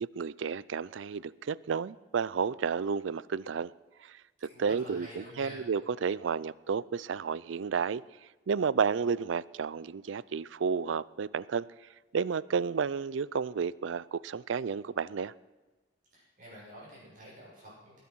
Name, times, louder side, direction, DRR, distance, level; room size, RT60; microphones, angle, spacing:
voice 1, 0.0-3.7 4.0-4.2 4.6-8.0 8.5-11.7 12.1-15.3, right 6 dB, 85° right, 0.4 m, -31 dB
voice 2, 4.5-5.7 16.1-18.0, equal, 45° right, 6.6 m, -48 dB
20.0 x 9.2 x 6.2 m
head